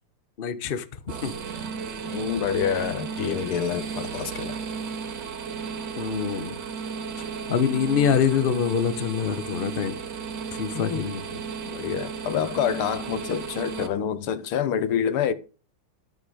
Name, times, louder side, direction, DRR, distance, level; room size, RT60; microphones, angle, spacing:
voice 1, 0.4-0.9 1.2-1.3 6.0-6.6 7.5-10.0 10.6-11.2, left 7 dB, 55° left, 0.6 m, -25 dB
sound 1, 1.1-13.9, right 6 dB, 55° right, 1.9 m, -34 dB
voice 2, 2.1-4.6 10.7-11.0 11.7-15.3, left 8 dB, 80° left, 1.8 m, -27 dB
11.5 x 7.0 x 5.0 m
omnidirectional pair, 2.4 m